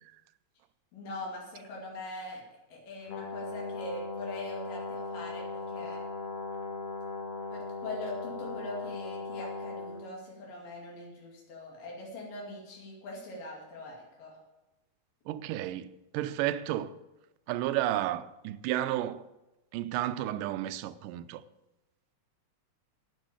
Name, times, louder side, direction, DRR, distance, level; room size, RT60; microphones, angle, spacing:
voice 1, 0.9-2.4 2.7-6.0 7.5-14.4, left 2 dB, 80° left, 4.1 m, -42 dB
Brass instrument, 3.1-10.1, left 3 dB, 65° left, 2.7 m, -38 dB
voice 2, 15.3-16.9 17.5-19.3 19.7-21.4, right 13 dB, 85° right, 2.2 m, -32 dB
8.9 x 8.6 x 8.6 m
omnidirectional pair, 3.8 m